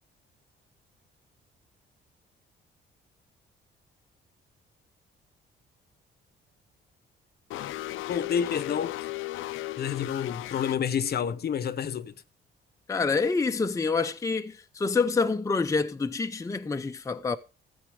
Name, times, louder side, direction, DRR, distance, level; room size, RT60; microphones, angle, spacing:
sound 1, 7.5-10.8, left 16 dB, 85° left, 0.6 m, -36 dB
voice 1, 8.1-8.9 9.8-12.1, left 8 dB, 55° left, 0.8 m, -29 dB
voice 2, 12.9-17.4, left 4 dB, 15° left, 0.6 m, -27 dB
13.0 x 8.0 x 4.9 m
cardioid pair, 90°, 20 cm